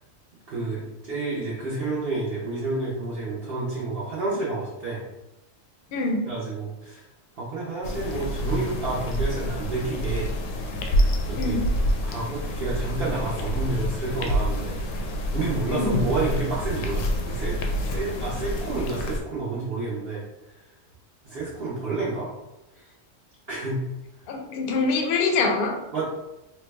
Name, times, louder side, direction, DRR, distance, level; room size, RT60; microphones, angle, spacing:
voice 1, 0.5-5.0 6.3-7.1 7.4-10.3 11.3-11.6 12.0-17.6 17.9-20.2 21.2-22.3 22.7-22.9 23.5-23.8 25.9-26.1, right 3 dB, 55° right, -7 dB, 0.9 m, -30 dB
sound 1, 7.8-19.2, equal, 80° left, 0.9 m, -27 dB
voice 2, 24.3-25.7, left 3 dB, 60° left, 2 dB, 0.6 m, -24 dB
3.2 x 2.2 x 3.3 m, 0.94 s
omnidirectional pair, 1.3 m